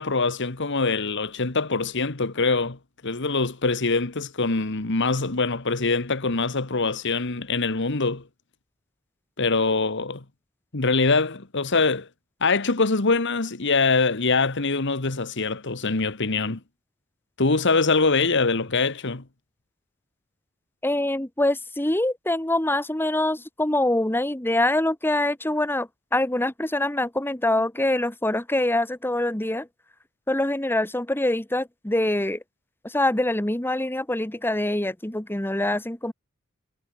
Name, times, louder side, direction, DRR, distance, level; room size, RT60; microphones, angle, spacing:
voice 1, 0.0-2.8 3.0-8.2 9.4-10.2 10.7-12.1 12.4-16.6 17.4-19.2, left 3 dB, 60° left, 1.7 m, -23 dB
voice 2, 20.8-29.7 30.3-32.4 32.8-36.1, left 1 dB, 10° left, 1.4 m, -24 dB
head